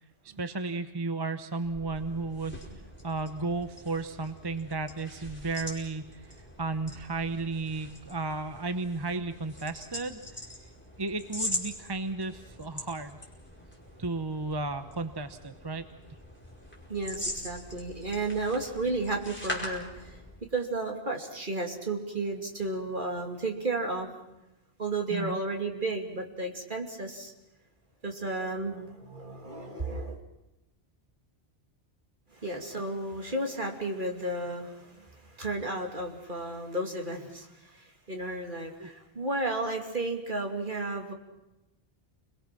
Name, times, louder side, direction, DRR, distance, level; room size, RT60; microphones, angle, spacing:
voice 1, 0.2-2.6 3.0-10.2 11.0-13.2 14.0-15.9 25.1-25.4 38.8-38.9, right 3 dB, 25° right, 9 dB, 0.9 m, -34 dB
sound 1, 1.6-20.4, equal, 10° left, 5.2 m, -42 dB
voice 2, 16.9-20.2 20.5-24.1 24.8-27.3 28.0-30.2 32.3-41.1, right 2 dB, 50° right, 2 dB, 2.9 m, -33 dB
29.5 x 22.0 x 6.0 m, 0.99 s
omnidirectional pair, 1.1 m